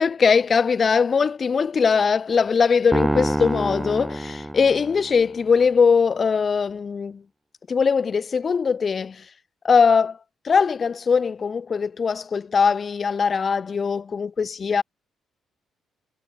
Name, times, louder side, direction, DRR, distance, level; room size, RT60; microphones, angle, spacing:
voice 1, 0.0-7.2 7.7-9.2 9.6-10.2 10.4-14.8, left 5 dB, 40° left, 3.3 m, -21 dB
sound 1, 2.9-5.3, right 1 dB, 10° right, 3.4 m, -26 dB
cardioid pair, 90°, 0 cm